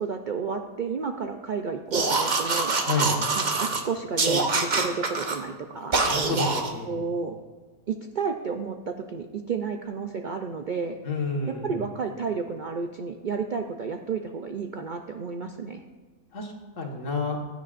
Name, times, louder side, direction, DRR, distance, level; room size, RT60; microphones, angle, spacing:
voice 1, 0.0-2.7 3.6-6.0 6.8-7.4 7.9-11.0 11.5-15.8, right 5 dB, 55° right, 5 dB, 0.5 m, -31 dB
sound 1, 1.9-3.8 4.2-5.4 5.9-6.7, right 3 dB, 35° right, 1.0 m, -25 dB
voice 2, 6.1-7.0 11.1-11.7 16.3-17.4, left 3 dB, 65° left, 0 dB, 1.9 m, -29 dB
16.0 x 10.5 x 2.5 m, 1.5 s
omnidirectional pair, 1.4 m